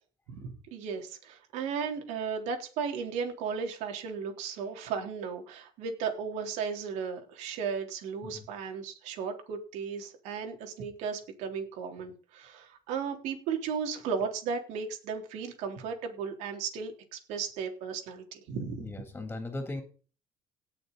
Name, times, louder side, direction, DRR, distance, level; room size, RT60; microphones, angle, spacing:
voice 1, 0.3-18.9, right 6 dB, 80° right, 3 dB, 3.8 m, -35 dB
voice 2, 18.8-19.8, left 2 dB, 15° left, 4 dB, 3.5 m, -38 dB
18.0 x 6.8 x 4.1 m, 0.37 s
supercardioid pair, 90°, 12 cm